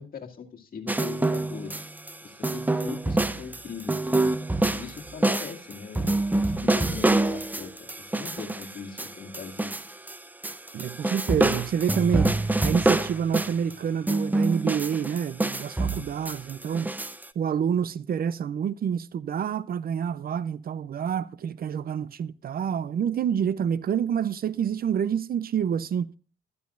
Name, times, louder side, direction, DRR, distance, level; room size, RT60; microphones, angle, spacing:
voice 1, 0.0-1.9 2.2-4.4 4.7-9.7, left 6 dB, 45° left, 2.3 m, -40 dB
sound 1, 0.9-2.1 2.4-10.2 10.4-13.7 14.1-17.2, right 2 dB, 10° right, 0.6 m, -26 dB
voice 2, 10.7-12.3 12.6-16.9 17.4-26.1, right 8 dB, 50° right, 0.5 m, -28 dB
12.5 x 12.5 x 2.5 m
cardioid pair, 90°, 20 cm